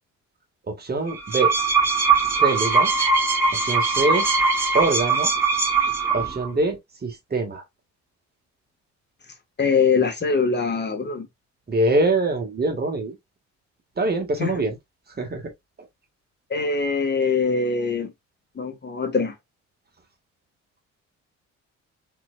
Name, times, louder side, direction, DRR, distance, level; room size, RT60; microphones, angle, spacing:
voice 1, 0.7-1.5 2.4-2.9 3.6-4.3 4.7-5.3 6.1-7.6 11.7-13.2 14.0-14.8 15.2-15.5, right 2 dB, 30° right, 1.8 m, -24 dB
sound 1, 1.1-6.5, right 4 dB, 10° right, 2.9 m, -21 dB
voice 2, 9.6-11.3 14.4-14.5 16.5-18.1 18.5-19.3, left 5 dB, 35° left, 1.5 m, -23 dB
4.5 x 4.0 x 2.4 m
cardioid pair, 90°, 30 cm